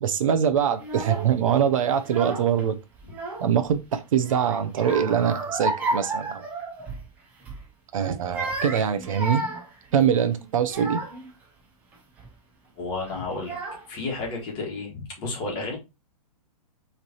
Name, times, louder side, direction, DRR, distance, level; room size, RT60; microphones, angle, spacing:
voice 1, 0.0-2.8 3.4-6.4 7.9-9.4 9.9-11.0, right 8 dB, 60° right, 0.6 m, -23 dB
Child speech kid speaking / Crying sobbing, 0.8-1.3 2.0-2.6 2.9-3.8 4.2-7.1 7.4-7.7 8.2-11.3 11.9-12.3 13.1-13.2 13.4-14.1, right 2 dB, 10° right, 0.4 m, -32 dB
voice 2, 12.8-13.6 13.9-15.8, left 3 dB, 25° left, 1.5 m, -32 dB
5.0 x 3.3 x 2.8 m
hypercardioid pair, 170°, 19 cm